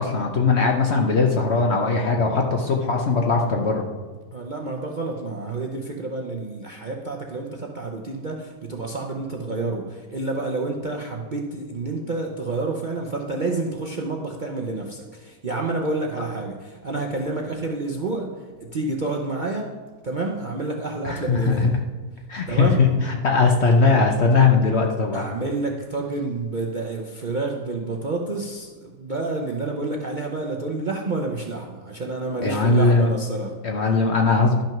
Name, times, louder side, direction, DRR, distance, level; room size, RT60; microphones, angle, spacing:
voice 1, 0.0-3.9 21.0-21.8 22.3-25.3 32.4-33.1 33.6-34.6, left 4 dB, 55° left, 2 dB, 0.7 m, -20 dB
voice 2, 4.3-18.3 18.6-19.7 20.0-21.8 22.5-22.8 25.1-33.6, right 3 dB, 65° right, 0 dB, 0.4 m, -29 dB
11.5 x 6.1 x 5.9 m, 1.4 s
omnidirectional pair, 2.1 m